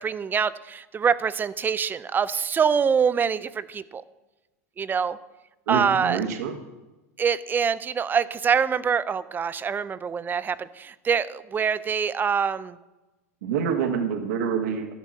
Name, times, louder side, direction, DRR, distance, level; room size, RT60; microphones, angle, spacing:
voice 1, 0.0-4.0 4.8-5.2 5.7-6.2 7.2-12.8, right 6 dB, 20° right, 16 dB, 0.5 m, -25 dB
voice 2, 5.7-6.6 13.4-14.9, right 7 dB, 75° right, 6 dB, 1.5 m, -26 dB
12.0 x 6.1 x 8.8 m, 1.1 s
hypercardioid pair, 105°, 9 cm